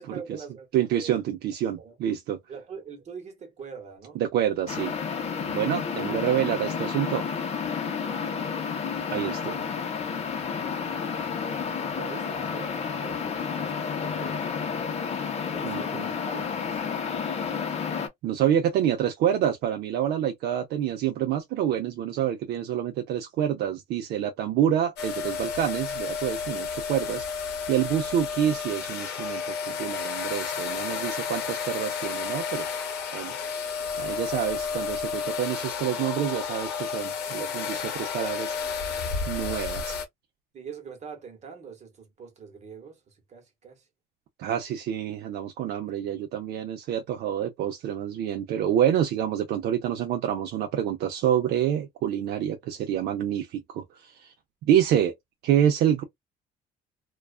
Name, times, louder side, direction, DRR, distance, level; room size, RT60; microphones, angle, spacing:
voice 1, 0.0-1.2 1.8-1.9 2.5-4.2 8.0-8.6 10.5-14.8 15.5-17.0 37.4-37.9 40.5-43.8, right 6 dB, 40° right, 1.0 m, -44 dB
voice 2, 0.7-2.4 4.2-4.9 5.4-7.2 9.1-9.7 15.6-16.0 18.2-32.7 33.1-33.3 34.0-38.5 39.3-40.0 44.4-54.3 54.7-55.1 55.4-56.0, right 10 dB, 75° right, 0.5 m, -27 dB
sound 1, 4.7-18.1, left 6 dB, 40° left, 0.7 m, -31 dB
sound 2, 25.0-40.0, left 6 dB, 80° left, 0.8 m, -32 dB
2.3 x 2.3 x 2.3 m
cardioid pair, 110°, 17 cm